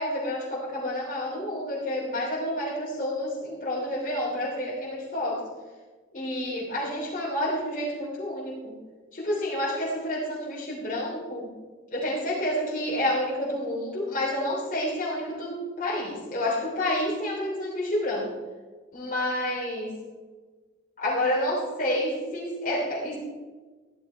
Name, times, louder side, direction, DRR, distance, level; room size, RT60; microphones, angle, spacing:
voice 1, 0.0-5.4 6.1-8.7 9.1-11.5 11.9-18.3 18.9-20.0 21.0-23.2, left 1 dB, 45° left, -6 dB, 3.1 m, -29 dB
15.0 x 12.0 x 4.5 m, 1.3 s
head